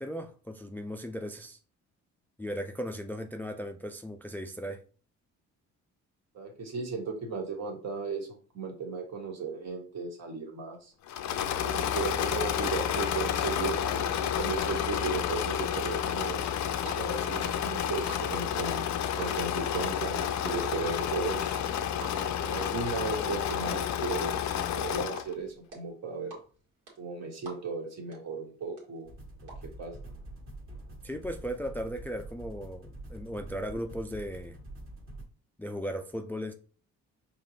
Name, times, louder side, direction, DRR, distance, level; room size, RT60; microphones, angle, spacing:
voice 1, 0.0-1.6 2.4-4.8 31.0-34.6 35.6-36.5, equal, 5° left, 0.4 m, -37 dB
voice 2, 6.3-10.9 11.6-16.4 16.8-21.6 22.2-24.3 24.7-26.3 27.0-29.1 29.8-30.0, right 4 dB, 60° right, 1.5 m, -36 dB
Engine / Mechanisms, 11.1-25.3, left 9 dB, 65° left, 0.5 m, -30 dB
sound 1, 16.9-17.0 17.2-19.3 19.5-27.8 28.1-28.2 28.5-29.5, right 3 dB, 80° right, 1.9 m, -46 dB
sound 2, 29.1-35.2, right 1 dB, 45° right, 1.4 m, -45 dB
5.0 x 3.1 x 2.7 m
cardioid pair, 90°, 30 cm